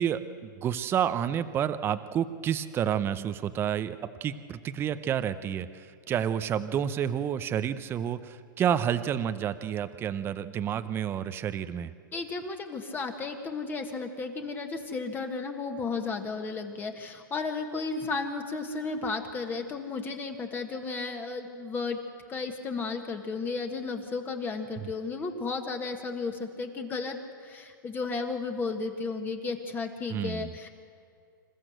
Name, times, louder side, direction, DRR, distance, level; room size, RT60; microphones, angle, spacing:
voice 1, 0.0-11.9 30.1-30.5, right 9 dB, 20° right, 12 dB, 0.7 m, -30 dB
voice 2, 12.1-22.0 22.3-30.7, left 4 dB, 15° left, 5 dB, 1.6 m, -34 dB
27.0 x 14.5 x 7.9 m, 2.3 s
hypercardioid pair, 135°, 11 cm